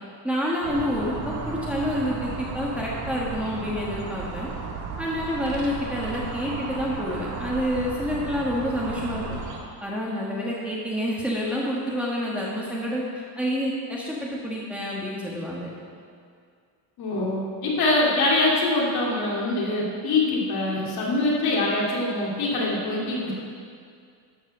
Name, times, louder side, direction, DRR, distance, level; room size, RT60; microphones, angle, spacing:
voice 1, 0.2-4.5 5.0-9.2 9.8-15.7, equal, 5° right, -5 dB, 1.4 m, -28 dB
sound 1, 0.6-9.6, right 4 dB, 85° right, 1.8 m, -34 dB
voice 2, 17.0-23.4, left 2 dB, 55° left, -4 dB, 2.8 m, -24 dB
12.5 x 4.6 x 6.8 m, 2.2 s
cardioid pair, 135°, 44 cm